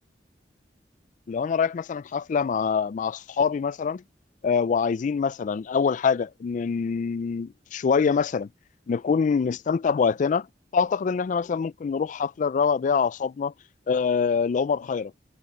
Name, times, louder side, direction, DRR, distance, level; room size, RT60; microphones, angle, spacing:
voice 1, 1.3-4.0 4.4-8.5 8.9-10.5 10.7-13.5 13.9-15.1, left 6 dB, 45° left, 0.3 m, -25 dB
head